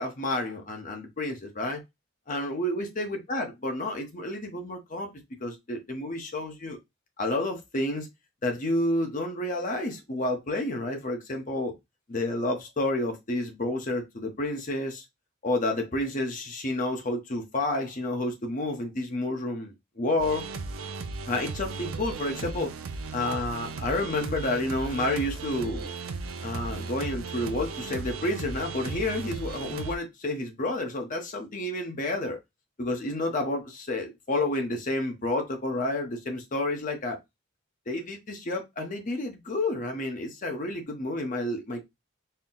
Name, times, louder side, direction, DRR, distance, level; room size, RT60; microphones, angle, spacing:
voice 1, 0.0-1.8 2.3-5.1 5.4-6.8 7.2-8.1 8.4-11.7 12.1-15.0 15.4-20.4 21.3-22.7 23.1-25.9 26.4-32.4 32.8-37.2 37.9-41.8, left 1 dB, 40° left, 0.8 m, -30 dB
sound 1, 20.2-29.9, right 4 dB, 85° right, 0.5 m, -36 dB
4.4 x 2.1 x 3.8 m
head